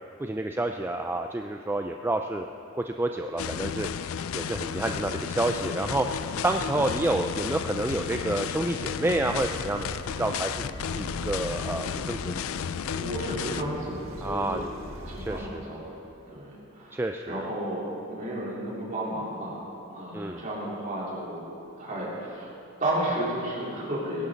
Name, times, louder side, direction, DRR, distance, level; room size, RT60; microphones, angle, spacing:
voice 1, 0.2-2.5 2.7-3.9 4.3-6.1 6.4-12.4 14.2-14.7 15.2-15.6 16.9-17.5 20.1-20.4, right 2 dB, 10° right, 4 dB, 0.3 m, -29 dB
sound 1, 3.4-13.6, left 7 dB, 80° left, 0.4 m, -33 dB
sound 2, 9.2-15.4, equal, 75° right, 1.7 m, -42 dB
voice 2, 12.9-14.7 15.1-15.8 16.3-17.0 17.3-19.6 19.9-21.5 21.8-22.5 22.8-24.3, right 1 dB, 40° right, -7 dB, 3.9 m, -33 dB
20.0 x 11.0 x 4.0 m, 2.9 s
head